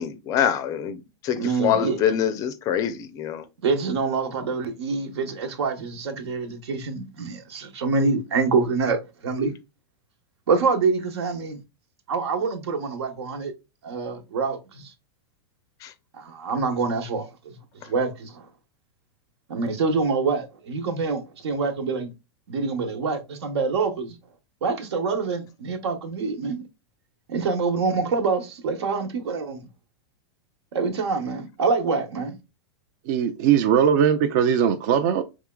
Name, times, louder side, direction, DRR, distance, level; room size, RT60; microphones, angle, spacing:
voice 1, 0.0-3.4 15.8-15.9, left 9 dB, 25° left, 0.4 m, -25 dB
voice 2, 1.3-2.0 3.6-9.0 9.2-9.5 10.5-11.6 12.1-13.5 13.8-14.9 16.1-17.6 17.8-18.5 19.5-22.1 22.5-24.2 24.6-26.6 27.3-29.6 30.7-32.3, right 4 dB, 80° right, 1.3 m, -26 dB
voice 3, 33.1-35.2, right 8 dB, 45° right, 0.4 m, -20 dB
4.8 x 3.6 x 2.3 m
supercardioid pair, 160°, 14 cm